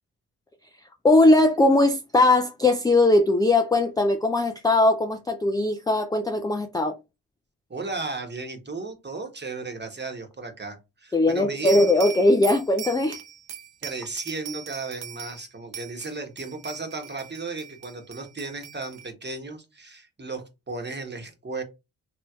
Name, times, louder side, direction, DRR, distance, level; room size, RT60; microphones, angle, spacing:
voice 1, 1.0-7.0 11.1-13.2, left 2 dB, 10° left, 0.4 m, -20 dB
voice 2, 7.7-11.8 13.8-21.6, right 3 dB, 20° right, 1.1 m, -35 dB
sound 1, 11.7-15.4 15.7-19.1, right 8 dB, 55° right, 0.8 m, -39 dB
3.0 x 2.9 x 2.3 m
hypercardioid pair, 40°, 47 cm